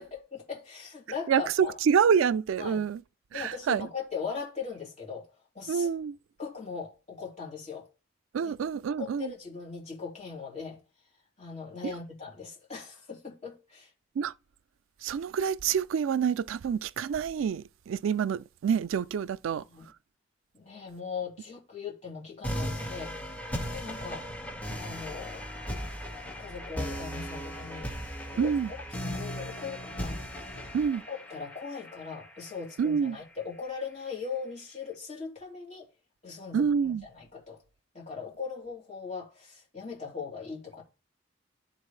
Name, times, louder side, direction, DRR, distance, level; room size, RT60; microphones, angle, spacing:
voice 1, 0.0-1.8 2.6-2.8 3.3-5.9 6.4-7.9 8.4-8.5 9.0-10.8 11.4-13.9 19.5-19.9 20.5-23.1 23.7-24.3 24.7-25.4 26.4-27.9 28.3-30.2 31.1-35.9 36.2-37.6 37.9-40.8, left 5 dB, 35° left, 3.0 m, -39 dB
voice 2, 1.3-3.0 3.3-3.9 5.7-6.2 8.3-9.3 11.8-11.9 14.2-14.3 15.0-19.6 28.4-28.7 30.7-31.0 32.8-33.2 36.5-37.0, right 7 dB, 90° right, 0.3 m, -27 dB
sound 1, 22.4-33.4, equal, 5° left, 1.6 m, -37 dB
11.0 x 4.0 x 3.2 m
head